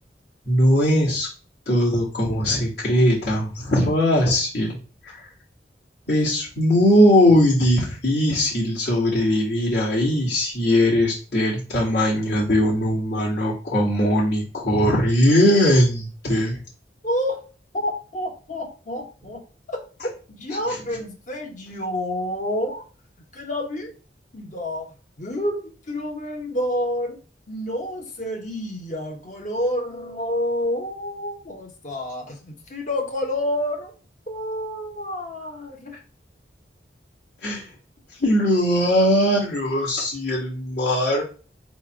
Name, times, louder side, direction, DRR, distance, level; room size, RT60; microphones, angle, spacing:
voice 1, 0.4-1.3 1.7-4.8 6.1-16.6 37.4-37.6 38.2-41.2, equal, 65° left, 2.5 m, -20 dB
voice 2, 17.0-17.4 17.7-19.8 20.3-22.8 23.3-23.9 24.3-24.9 25.2-27.2 27.5-33.9 34.3-36.0, left 1 dB, 45° left, 1.2 m, -29 dB
4.4 x 2.5 x 4.6 m
head